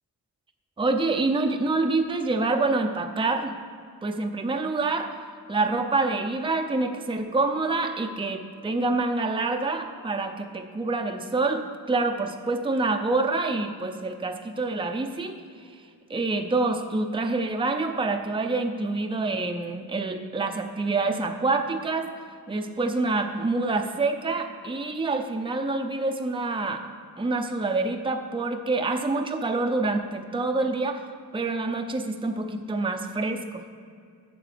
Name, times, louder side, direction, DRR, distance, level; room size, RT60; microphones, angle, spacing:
voice 1, 0.8-3.5 4.0-5.2 5.5-15.3 15.6-15.7 16.1-22.1 22.5-26.8 27.2-31.0 31.3-33.6, right 3 dB, 15° right, 4 dB, 0.5 m, -26 dB
8.9 x 6.9 x 6.6 m, 2.3 s
wide cardioid pair, 170°, 37 cm